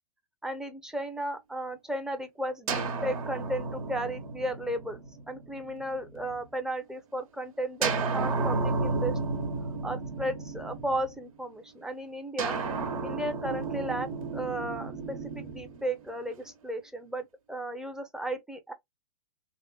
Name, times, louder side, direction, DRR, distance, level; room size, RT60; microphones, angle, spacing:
voice 1, 0.4-5.0 5.3-9.2 9.8-12.6 13.0-18.7, right 1 dB, 5° right, 0.5 m, -34 dB
sound 1, 2.7-6.5 7.8-11.4 12.4-16.5, right 3 dB, 70° right, 1.1 m, -33 dB
2.9 x 2.9 x 2.3 m
hypercardioid pair, 125°, 19 cm